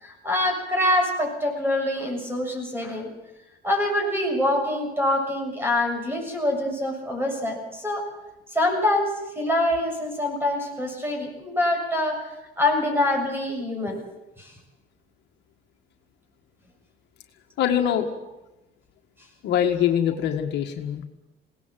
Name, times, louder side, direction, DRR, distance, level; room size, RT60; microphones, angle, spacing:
voice 1, 0.0-3.1 3.6-8.1 8.5-12.2 12.6-14.0 14.4-14.5, left 1 dB, 10° right, 3 dB, 7.2 m, -25 dB
voice 2, 17.6-18.1 19.4-21.1, left 9 dB, 65° left, 4 dB, 1.8 m, -23 dB
21.0 x 18.0 x 7.7 m, 0.98 s
cardioid pair, 105°, 19 cm